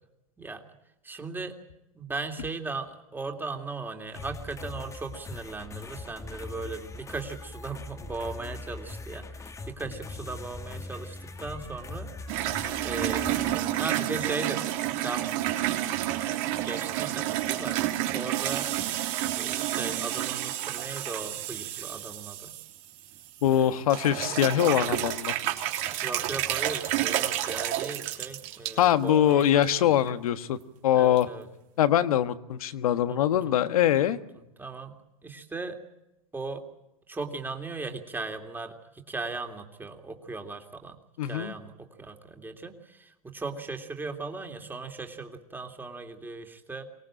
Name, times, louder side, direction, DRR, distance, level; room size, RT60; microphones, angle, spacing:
voice 1, 1.0-1.6 1.9-12.1 12.8-15.3 16.4-18.7 19.4-22.6 23.5-23.8 26.0-29.9 30.9-31.5 33.1-33.3 34.6-35.0 35.2-35.8 36.3-36.6 37.1-46.8, right 3 dB, 10° right, 5 dB, 2.8 m, -37 dB
sound 1, 4.1-13.5, left 3 dB, 15° left, 1.4 m, -41 dB
sound 2, 12.3-23.6 23.9-28.8 29.3-29.7 30.1-30.2 31.2-31.3, right 13 dB, 60° right, 3.2 m, -30 dB
voice 2, 23.4-25.3 28.8-31.3 31.8-34.2 41.2-41.5, left 11 dB, 80° left, 11 dB, 1.4 m, -23 dB
24.5 x 18.5 x 8.9 m, 0.92 s
hypercardioid pair, 120°, 18 cm